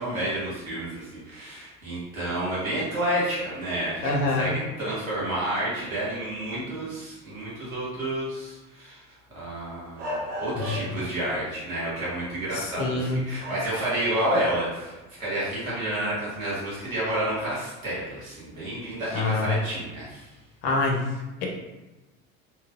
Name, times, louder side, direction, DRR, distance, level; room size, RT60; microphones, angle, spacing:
voice 1, 0.0-9.0 9.3-20.2, right 1 dB, 80° right, -9 dB, 1.4 m, -30 dB
voice 2, 4.0-4.6 10.5-10.6 12.5-13.2 19.1-19.5 20.6-21.0, left 2 dB, 50° left, 0 dB, 0.8 m, -25 dB
sound 1, 9.9-11.1 12.6-12.9 13.4-14.5 14.9-15.0 17.4-17.5 19.1-19.4, equal, 65° right, 1.2 m, -35 dB
3.1 x 3.0 x 2.4 m, 1.1 s
figure-of-eight pair, 65°, 41 cm